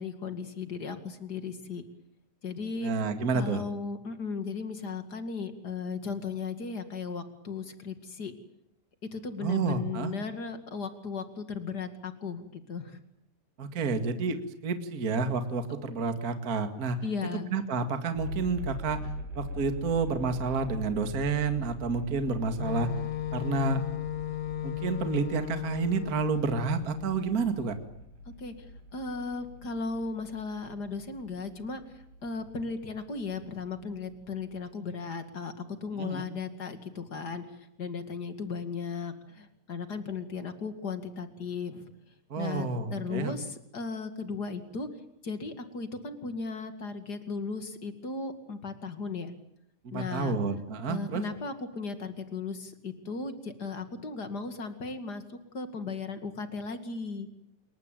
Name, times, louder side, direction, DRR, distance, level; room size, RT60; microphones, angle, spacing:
voice 1, 0.0-1.8 2.4-3.0 3.3-8.3 9.1-13.0 13.8-14.0 17.0-17.5 28.4-28.7 28.9-37.5 37.8-41.9 42.4-44.9 45.2-49.3 49.9-50.4 50.9-57.3, left 4 dB, 35° left, 8 dB, 1.9 m, -36 dB
voice 2, 2.8-3.6 9.4-10.1 13.6-17.0 17.5-19.1 19.3-22.9 23.3-23.8 24.6-27.8 35.9-36.2 42.3-43.3 49.8-51.2, right 4 dB, 35° right, 8 dB, 1.6 m, -30 dB
sound 1, 18.2-34.5, left 1 dB, 55° right, 5.9 m, -42 dB
Wind instrument woodwind instrument, 22.6-27.3, left 13 dB, 55° left, 1.6 m, -35 dB
27.5 x 23.0 x 9.1 m, 0.75 s
omnidirectional pair, 4.7 m